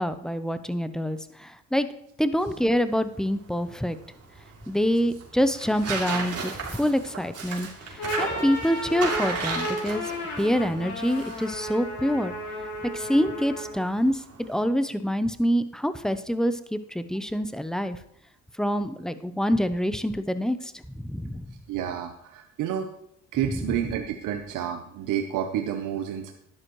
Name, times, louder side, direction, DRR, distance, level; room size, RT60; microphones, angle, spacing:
voice 1, 0.0-1.9 2.2-4.0 4.7-10.1 10.4-12.3 12.9-18.0 18.6-21.5, equal, ahead, 11 dB, 0.7 m, -26 dB
Tearing, 2.4-14.6, right 4 dB, 55° right, 3.0 m, -36 dB
sound 1, 7.8-13.9, left 1 dB, 80° left, 2.9 m, -34 dB
voice 2, 21.7-22.9 23.3-26.3, right 9 dB, 90° right, 4 dB, 0.9 m, -29 dB
12.5 x 10.5 x 3.1 m, 0.73 s
cardioid pair, 90°, 30 cm